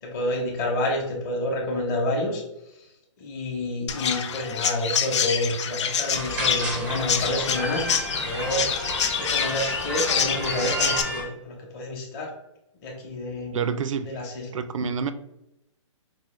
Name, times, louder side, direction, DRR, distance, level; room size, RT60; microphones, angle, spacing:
voice 1, 0.0-2.4 2.8-2.9 3.2-8.9 9.2-12.3 12.8-13.6 14.0-14.5, left 1 dB, 30° left, -2 dB, 0.8 m, -29 dB
Chirp tweet, 3.9-11.0, left 7 dB, 65° left, 0.5 m, -27 dB
sound 1, 6.1-11.2, right 1 dB, 5° right, 0.4 m, -32 dB
sound 2, 8.2-10.8, left 4 dB, 80° left, 0.9 m, -41 dB
voice 2, 13.5-14.2 14.5-15.1, right 6 dB, 75° right, 11 dB, 0.4 m, -28 dB
4.6 x 2.3 x 3.1 m, 0.87 s
hypercardioid pair, 155°, 16 cm